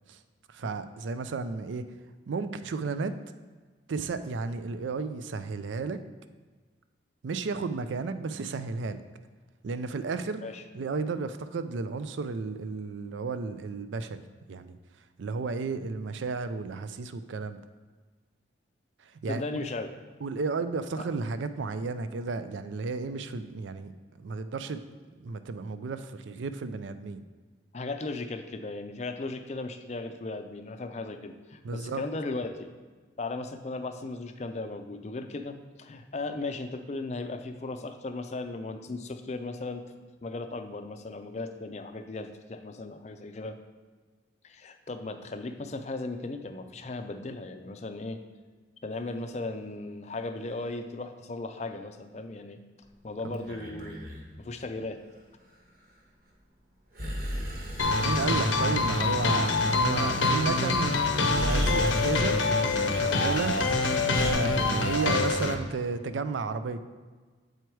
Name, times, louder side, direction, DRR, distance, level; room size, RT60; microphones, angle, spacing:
voice 1, 0.5-1.9 2.3-3.2 3.9-6.0 7.2-9.0 9.6-10.4 10.7-14.2 14.5-14.8 15.2-17.6 19.2-19.6 20.2-23.9 24.2-24.8 25.2-27.2 31.6-32.0 53.2-53.5 58.0-62.4 62.9-63.6 64.2-66.8, right 4 dB, 75° right, 11 dB, 0.4 m, -33 dB
voice 2, 19.3-19.9 21.0-21.1 27.7-32.7 33.2-39.8 40.2-43.6 44.4-48.2 48.8-52.6 53.0-54.0 54.4-55.0, left 3 dB, 35° left, 8 dB, 0.4 m, -36 dB
Breathing, 53.3-54.3 56.9-58.4 60.6-60.7 61.2-62.3 63.2-64.3, equal, 50° right, 1.1 m, -34 dB
sound 1, 57.8-65.5, left 3 dB, 85° left, 0.6 m, -25 dB
7.9 x 4.6 x 4.6 m, 1.4 s
head